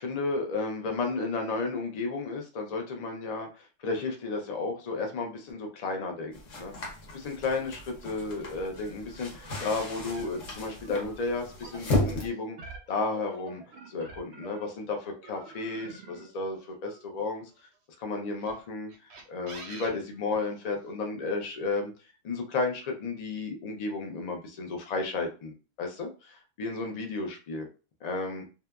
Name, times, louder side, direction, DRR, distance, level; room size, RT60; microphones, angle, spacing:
voice 1, 0.0-3.5 3.8-12.6 12.9-13.6 13.9-17.5 18.0-18.9 19.3-21.9 22.2-27.7 28.0-28.5, left 3 dB, 50° left, 3 dB, 0.5 m, -33 dB
sound 1, 6.3-12.3, left 2 dB, 80° left, 1.2 m, -35 dB
sound 2, 8.0-14.8 15.2-17.6 18.3-20.9, right 3 dB, 70° right, 0.8 m, -49 dB
sound 3, 11.6-16.9, right 2 dB, 10° right, 0.8 m, -51 dB
2.7 x 2.3 x 2.2 m, 0.33 s
omnidirectional pair, 1.3 m